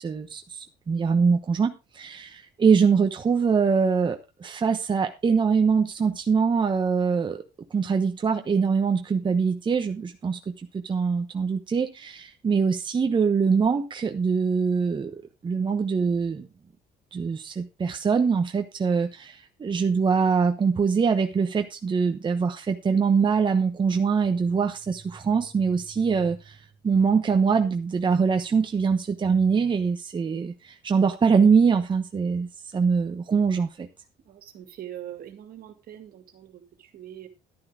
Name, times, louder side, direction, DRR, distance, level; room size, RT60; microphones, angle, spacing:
voice 1, 0.0-7.4 7.7-16.5 17.1-26.6 26.8-33.9, right 5 dB, 30° right, 5 dB, 1.0 m, -23 dB
voice 2, 34.3-37.3, right 11 dB, 65° right, 7 dB, 2.2 m, -42 dB
12.0 x 9.6 x 3.7 m, 0.27 s
cardioid pair, 110°, 17 cm